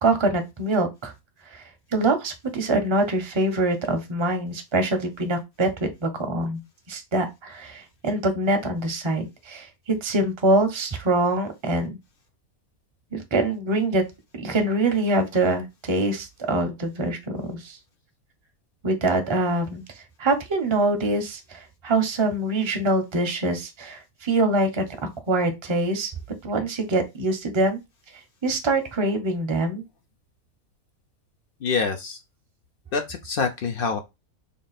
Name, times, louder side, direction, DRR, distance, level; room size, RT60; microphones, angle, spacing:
voice 1, 0.0-1.1 1.5-1.6 1.9-6.6 6.9-12.0 13.1-14.0 14.4-17.8 18.8-19.8 20.2-24.9 25.3-26.1 26.4-27.8 28.4-29.8, right 2 dB, 30° right, 0.5 m, -24 dB
voice 2, 31.6-32.2 32.9-34.0, left 5 dB, 65° left, 0.5 m, -26 dB
3.5 x 2.4 x 3.9 m
omnidirectional pair, 1.5 m